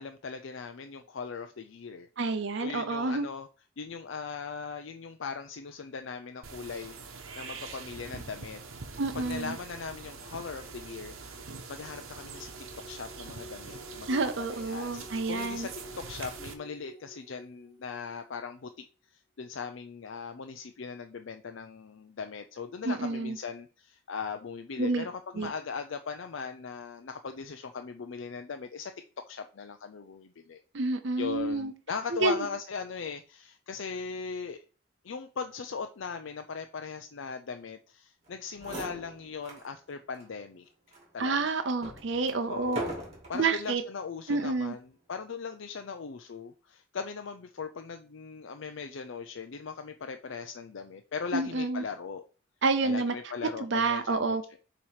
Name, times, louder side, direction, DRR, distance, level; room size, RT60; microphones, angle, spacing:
voice 1, 0.0-2.1 2.6-3.5 3.8-8.6 9.1-14.1 14.4-15.7 16.0-18.7 19.1-28.9 29.3-30.6 31.2-34.6 35.0-41.5 42.5-42.9 43.3-52.2 52.8-54.4, left 5 dB, 65° left, 6 dB, 0.5 m, -39 dB
voice 2, 2.2-3.3 9.0-9.6 14.1-15.7 22.8-23.4 24.8-25.0 25.4-25.5 30.7-31.7 32.1-32.5 41.2-42.8 43.3-43.8 44.3-44.7 51.3-51.8 52.6-53.1 53.6-54.4, right 3 dB, 55° right, 7 dB, 0.6 m, -29 dB
sound 1, 6.4-16.5, right 4 dB, 80° right, 1.0 m, -44 dB
sound 2, 11.4-18.7, equal, 20° left, 1.4 m, -52 dB
sound 3, 38.3-38.4 38.5-39.7 40.1-40.3 40.9-43.5 44.3-44.6, right 1 dB, 30° right, 2.0 m, -40 dB
7.0 x 3.0 x 4.9 m, 0.37 s
head